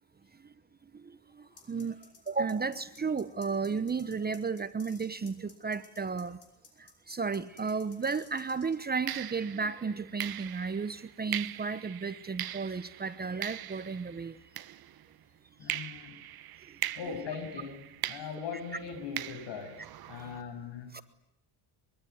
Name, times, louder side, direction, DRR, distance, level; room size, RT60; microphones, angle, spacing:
voice 1, 0.9-2.0 2.3-6.4 6.8-14.4 15.6-15.8 20.9-21.0, right 5 dB, 20° right, 1.0 m, -33 dB
sound 1, 1.6-8.9, left 4 dB, 30° left, 5.9 m, -56 dB
sound 2, 7.9-8.1 9.1-15.2 15.7-20.4, right 12 dB, 50° right, 1.2 m, -41 dB
voice 2, 15.6-16.2 16.9-21.0, left 6 dB, 65° left, 7.9 m, -40 dB
24.0 x 23.0 x 9.6 m
cardioid pair, 145°, 46 cm